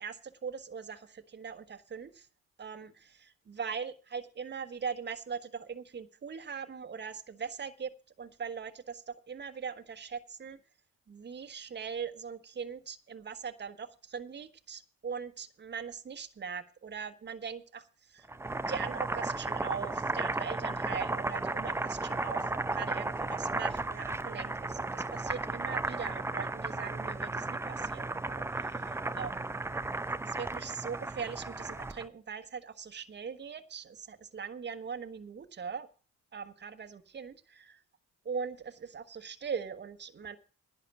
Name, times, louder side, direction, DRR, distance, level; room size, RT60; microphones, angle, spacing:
voice 1, 0.0-2.3 2.6-7.9 8.2-10.6 11.1-18.3 18.7-29.5 30.4-35.9 36.3-37.8 38.2-40.4, right 6 dB, 35° right, 7 dB, 1.4 m, -41 dB
Boiling, 18.2-32.1, right 2 dB, 10° right, 0.5 m, -34 dB
11.0 x 8.3 x 7.2 m, 0.36 s
cardioid pair, 90°, 30 cm